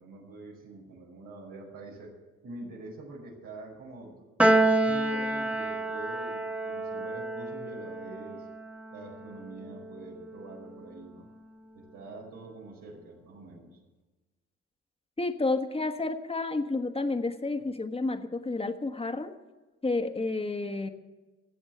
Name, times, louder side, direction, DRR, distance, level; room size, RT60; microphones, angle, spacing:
voice 1, 0.0-2.1 2.4-8.5 8.9-11.3 11.7-13.8, right 2 dB, 85° right, -3 dB, 5.0 m, -45 dB
Piano, 4.4-10.9, right 2 dB, 5° right, 1.3 m, -29 dB
voice 2, 15.2-19.3 19.8-20.9, left 3 dB, 20° left, 7 dB, 1.5 m, -30 dB
16.5 x 7.9 x 8.9 m, 1.2 s
cardioid pair, 90°, 30 cm